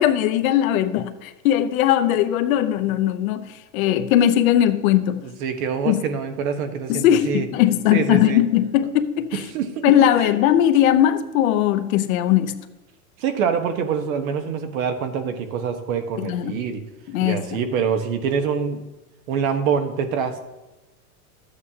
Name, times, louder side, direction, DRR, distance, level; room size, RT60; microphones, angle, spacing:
voice 1, 0.0-3.5 3.7-5.2 5.8-6.0 6.9-9.4 9.8-12.5 16.2-16.6 17.1-17.6, left 11 dB, 70° left, 8 dB, 0.8 m, -19 dB
voice 2, 5.2-7.5 7.9-8.4 9.5-9.8 10.2-10.3 13.2-16.8 17.2-18.8 19.3-20.4, right 6 dB, 70° right, 7 dB, 1.3 m, -25 dB
12.0 x 8.3 x 2.8 m, 1.1 s
supercardioid pair, 130°, 44 cm